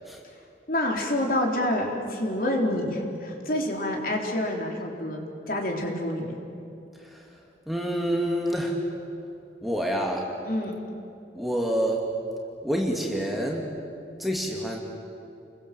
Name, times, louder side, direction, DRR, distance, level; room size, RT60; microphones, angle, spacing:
voice 1, 0.7-6.4 10.4-10.8, left 1 dB, 50° left, 1 dB, 3.8 m, -27 dB
voice 2, 7.7-8.8 9.6-10.3 11.4-12.0 12.6-13.7 14.2-14.8, equal, ahead, -1 dB, 2.5 m, -27 dB
30.0 x 23.0 x 7.7 m, 2.7 s
head